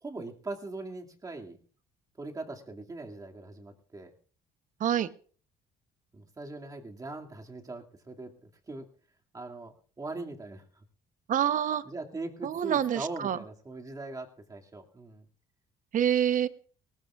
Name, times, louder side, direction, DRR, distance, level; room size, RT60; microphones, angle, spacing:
voice 1, 0.0-1.6 2.2-4.1 6.1-8.9 9.3-10.8 11.8-15.3, right 2 dB, 20° right, 1 dB, 2.3 m, -41 dB
voice 2, 11.3-11.8 12.4-13.4 15.9-16.5, right 10 dB, 50° right, 14 dB, 0.9 m, -26 dB
20.0 x 18.0 x 2.4 m, 0.42 s
cardioid pair, 110°, 17 cm